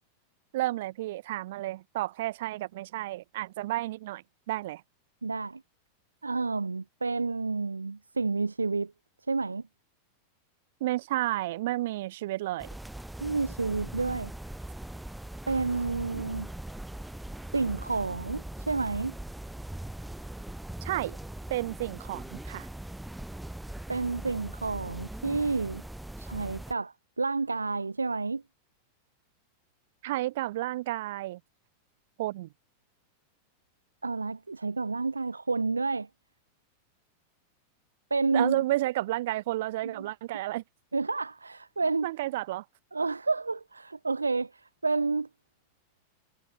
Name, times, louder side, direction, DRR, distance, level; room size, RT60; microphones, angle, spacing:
voice 1, 0.5-4.8 10.8-12.7 20.8-21.2 21.5-22.7 30.0-31.4 32.2-32.5 38.3-40.6 42.0-42.6, right 16 dB, 55° right, 6.3 m, -31 dB
voice 2, 5.2-5.6 6.2-8.9 9.3-9.6 13.2-14.3 15.5-16.5 17.5-19.1 23.9-25.8 26.2-28.4 34.0-36.1 38.1-38.6 39.8-40.1 40.9-42.1 42.9-45.3, right 3 dB, 80° right, 1.0 m, -30 dB
sound 1, 12.6-26.7, right 1 dB, 5° right, 2.8 m, -41 dB
figure-of-eight pair, 90°, 0 cm